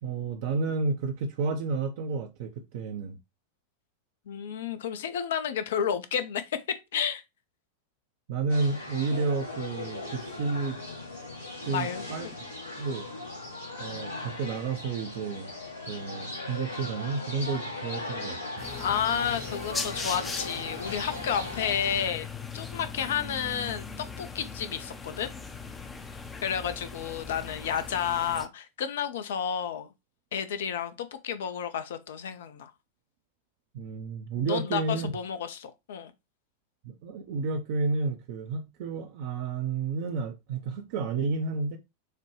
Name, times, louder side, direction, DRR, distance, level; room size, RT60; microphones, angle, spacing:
voice 1, 0.0-3.2 8.3-10.8 11.7-12.3 12.8-13.0 13.8-15.5 15.9-18.4 33.7-35.1 36.8-41.8, right 4 dB, 50° right, 0.6 m, -31 dB
voice 2, 4.3-6.6 6.9-7.2 11.7-12.3 18.8-22.3 22.5-23.9 24.2-25.3 26.4-29.9 30.3-32.7 34.4-36.1, left 8 dB, 60° left, 0.6 m, -31 dB
sound 1, 8.5-22.1, left 2 dB, 80° left, 1.5 m, -38 dB
sound 2, 18.6-28.5, left 4 dB, 15° left, 0.6 m, -39 dB
6.5 x 2.2 x 3.1 m
figure-of-eight pair, 90°, 0 cm